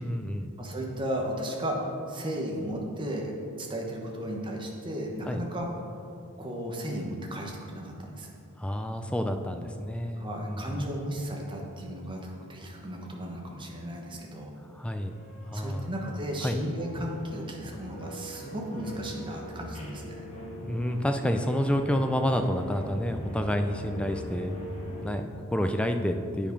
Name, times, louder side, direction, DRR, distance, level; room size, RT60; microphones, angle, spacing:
voice 1, 0.0-0.6 5.2-5.4 8.6-10.9 14.7-15.1 15.5-15.9 16.4-16.6 20.6-24.5 25.0-26.5, equal, 5° left, 6 dB, 0.3 m, -29 dB
voice 2, 0.6-3.3 3.6-5.7 6.4-8.3 10.1-14.5 15.5-20.3, equal, 20° right, 0 dB, 1.0 m, -35 dB
sound 1, 15.0-25.1, equal, 30° left, 1.6 m, -42 dB
8.8 x 5.0 x 5.2 m, 2.5 s
head